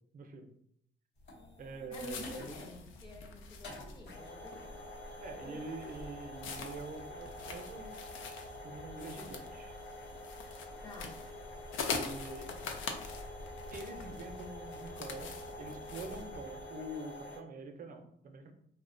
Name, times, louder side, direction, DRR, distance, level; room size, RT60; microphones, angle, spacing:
voice 1, 0.1-0.5 1.6-2.5 5.2-8.0 8.6-9.7 11.8-12.5 13.7-18.5, right 2 dB, 45° right, 5 dB, 0.5 m, -45 dB
sound 1, 1.2-17.4, left 1 dB, 65° left, 0.9 m, -48 dB
sound 2, 1.9-16.6, left 4 dB, 85° left, 0.4 m, -44 dB
voice 2, 1.9-4.8 5.4-5.6 10.8-11.1, left 2 dB, 20° left, -1 dB, 0.6 m, -49 dB
2.7 x 2.1 x 2.5 m, 0.69 s
cardioid pair, 90°, 20 cm